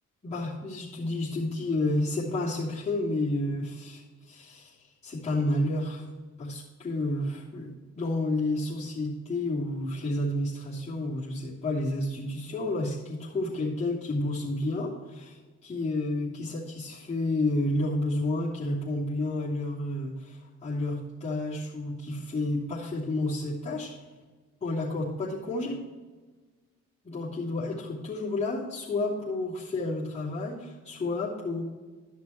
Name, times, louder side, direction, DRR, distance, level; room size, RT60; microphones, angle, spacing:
voice 1, 0.2-4.7 5.0-6.1 6.4-7.7 8.0-23.9 24.6-25.8 27.0-31.6, left 2 dB, 20° left, -10 dB, 2.9 m, -30 dB
12.0 x 5.9 x 4.4 m, 1.3 s
cardioid pair, 90°, 30 cm